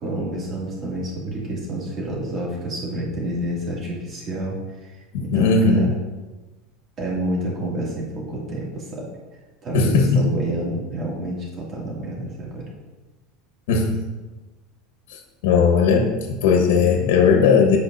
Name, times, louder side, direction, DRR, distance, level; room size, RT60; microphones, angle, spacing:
voice 1, 0.0-4.5 4.8-4.9 5.2-5.9 7.0-9.0 9.6-12.6, right 1 dB, 30° right, -4 dB, 2.4 m, -28 dB
voice 2, 5.1-5.9 9.7-10.2 13.7-14.0 15.4-17.8, left 5 dB, 85° left, 2 dB, 1.3 m, -17 dB
14.5 x 5.1 x 2.7 m, 1.2 s
supercardioid pair, 155°, 0 cm